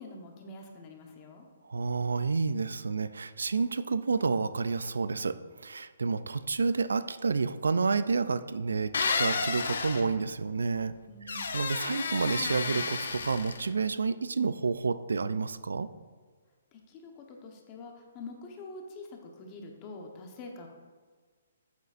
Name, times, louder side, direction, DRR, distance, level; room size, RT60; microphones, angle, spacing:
voice 1, 0.0-1.4 11.1-11.5 16.7-20.7, left 2 dB, 30° left, 2 dB, 1.0 m, -45 dB
voice 2, 1.6-10.9 11.3-15.9, right 4 dB, 85° right, 14 dB, 0.3 m, -30 dB
sound 1, 8.9-10.1 11.3-13.7, left 4 dB, 70° left, 0.8 m, -31 dB
8.1 x 7.9 x 2.5 m, 1.5 s
hypercardioid pair, 145°, 0 cm